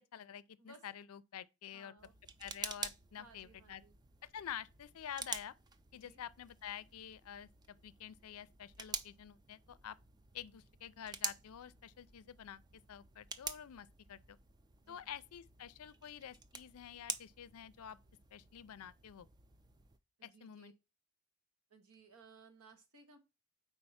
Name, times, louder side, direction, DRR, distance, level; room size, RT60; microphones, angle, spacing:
voice 1, 0.0-2.0 2.4-3.8 4.2-5.5 5.9-10.0 10.3-12.6 12.9-14.4 14.9-18.0 18.3-19.3 20.2-20.7, left 9 dB, 80° left, 0.4 m, -49 dB
voice 2, 1.7-2.1 3.2-4.0 5.9-6.2 14.8-15.1 20.2-20.7 21.7-23.2, right 3 dB, 90° right, 1.3 m, -61 dB
sound 1, 2.0-20.0, right 5 dB, 20° right, 0.3 m, -48 dB
4.6 x 4.4 x 5.6 m
head